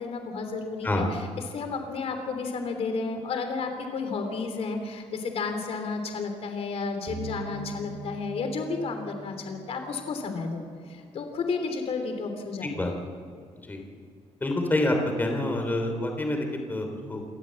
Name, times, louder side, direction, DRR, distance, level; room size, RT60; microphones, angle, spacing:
voice 1, 0.0-12.7, left 4 dB, 60° left, 6 dB, 3.3 m, -32 dB
sound 1, 7.1-10.2, right 2 dB, 35° right, 2.5 m, -42 dB
voice 2, 12.6-12.9 13.7-13.8 14.4-17.3, left 1 dB, 15° left, 3 dB, 3.2 m, -27 dB
28.0 x 14.0 x 7.7 m, 2.2 s
cardioid pair, 160°, 12 cm